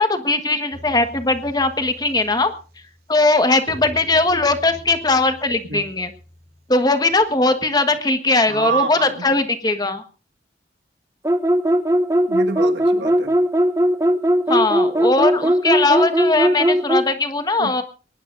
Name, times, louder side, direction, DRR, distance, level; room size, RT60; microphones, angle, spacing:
voice 1, 0.0-2.5 3.1-6.1 6.7-10.0 14.5-17.8, left 2 dB, 20° left, 8 dB, 1.4 m, -19 dB
sound 1, 0.7-7.7, equal, 60° right, 4.0 m, -43 dB
voice 2, 8.5-9.3 12.3-13.4 17.6-17.7, right 5 dB, 80° right, 5 dB, 1.6 m, -26 dB
sound 2, 11.2-17.1, equal, 15° right, 0.8 m, -18 dB
22.5 x 19.5 x 2.6 m, 0.35 s
head